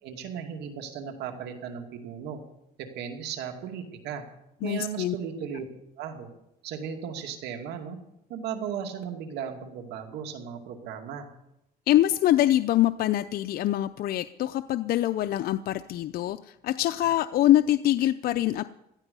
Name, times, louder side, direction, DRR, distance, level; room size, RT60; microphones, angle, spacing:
voice 1, 0.0-2.4 2.8-4.2 4.6-5.7 6.0-6.3 6.6-8.0 8.3-11.3, right 7 dB, 80° right, 5 dB, 2.4 m, -36 dB
voice 2, 4.6-5.1 11.9-18.6, left 13 dB, 60° left, 10 dB, 0.5 m, -24 dB
17.5 x 13.0 x 5.5 m, 0.87 s
cardioid pair, 110°, 17 cm